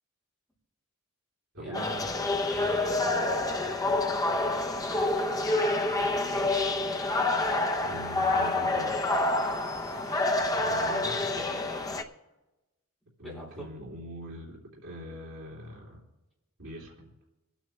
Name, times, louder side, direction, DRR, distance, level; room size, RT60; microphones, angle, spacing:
voice 1, 1.5-2.1 7.8-9.1 10.5-12.1 13.2-16.0 16.6-17.1, equal, 70° right, -5 dB, 3.0 m, -43 dB
sound 1, 1.7-12.0, left 2 dB, 15° left, 0.7 m, -28 dB
voice 2, 2.4-4.0 4.3-5.4 6.1-6.6 9.8-10.7 13.2-13.7, equal, ahead, -6 dB, 5.1 m, -46 dB
26.0 x 9.2 x 3.3 m, 1.0 s
head